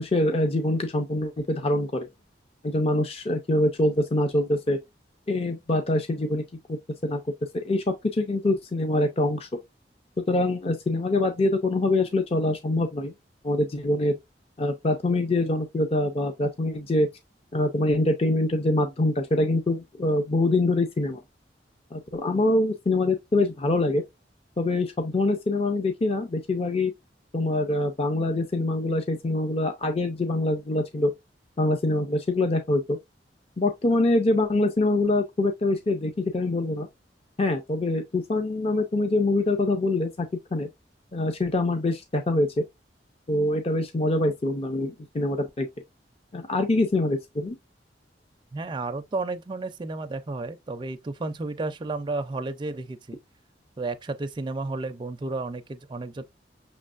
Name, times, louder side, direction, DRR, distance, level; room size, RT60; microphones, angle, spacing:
voice 1, 0.0-2.1 2.6-4.8 5.3-6.4 6.7-7.2 7.5-9.5 10.3-13.1 13.4-14.2 14.6-17.1 17.5-21.2 21.9-24.0 24.6-26.9 27.3-31.1 31.6-33.0 33.6-36.9 37.4-40.3 40.5-40.7 41.1-42.6 43.3-45.7 46.3-47.6, left 2 dB, 35° left, 0.5 m, -24 dB
voice 2, 48.5-53.2 53.8-56.2, right 3 dB, 25° right, 0.4 m, -32 dB
5.9 x 3.2 x 2.4 m
head